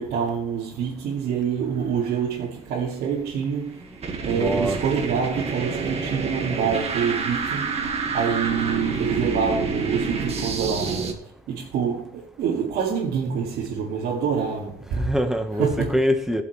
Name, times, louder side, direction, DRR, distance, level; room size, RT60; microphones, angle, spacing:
voice 1, 0.0-3.8 4.2-7.8 8.1-11.1 11.5-15.1 15.6-16.0, right 6 dB, 85° right, 2.2 m, -26 dB
sound 1, 3.0-11.1, right 4 dB, 40° right, 2.0 m, -28 dB
voice 2, 4.3-4.8 14.9-16.4, equal, 5° right, 1.4 m, -24 dB
16.5 x 7.1 x 3.3 m
cardioid pair, 115°, 16 cm